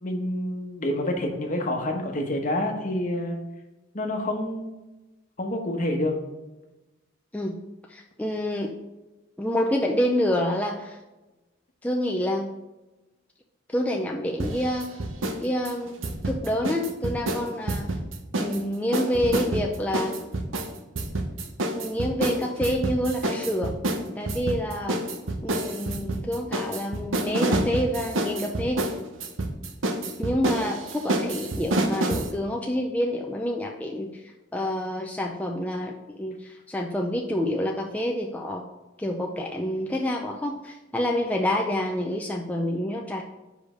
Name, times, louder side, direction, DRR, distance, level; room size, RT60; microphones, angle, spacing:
voice 1, 0.0-3.4 3.9-4.8 5.4-6.1, left 1 dB, 45° left, 3 dB, 1.1 m, -28 dB
voice 2, 7.9-8.7 9.4-11.0 11.8-12.5 13.7-14.9 15.4-16.0 16.2-17.8 18.4-20.2 21.8-23.7 24.2-25.0 25.4-29.0 30.2-38.6 39.0-43.2, equal, 10° left, 0 dB, 0.5 m, -28 dB
sound 1, 14.4-15.4 15.6-18.6 18.9-32.3, right 1 dB, 90° right, 0.9 m, -28 dB
5.2 x 5.0 x 6.3 m, 1.1 s
head